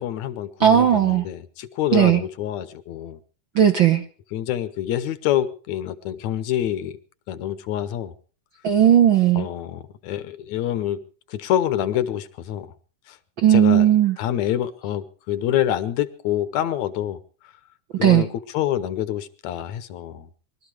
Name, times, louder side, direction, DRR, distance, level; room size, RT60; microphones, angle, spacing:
voice 1, 0.0-3.2 4.3-7.0 7.3-8.1 9.4-11.0 11.3-12.7 13.1-13.2 13.5-13.9 14.2-17.2 18.0-18.3 18.5-20.3, left 11 dB, 75° left, 13 dB, 2.1 m, -26 dB
voice 2, 0.6-1.3 1.9-2.2 3.5-4.0 8.6-9.5 13.4-14.2 17.9-18.3, right 10 dB, 60° right, 6 dB, 1.3 m, -16 dB
22.5 x 13.0 x 4.9 m, 0.40 s
omnidirectional pair, 3.4 m